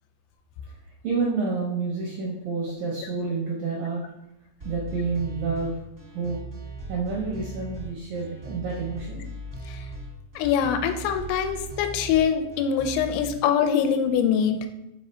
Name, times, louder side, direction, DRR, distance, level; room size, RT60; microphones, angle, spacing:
voice 1, 1.0-4.0 4.6-5.8 6.1-6.4 6.9-9.3, right 4 dB, 75° right, -3 dB, 2.0 m, -29 dB
sound 1, 4.6-13.3, right 2 dB, 55° right, 0.8 m, -38 dB
voice 2, 10.4-14.7, left 8 dB, 85° left, 6 dB, 2.8 m, -23 dB
6.4 x 3.8 x 4.2 m, 0.88 s
omnidirectional pair, 5.1 m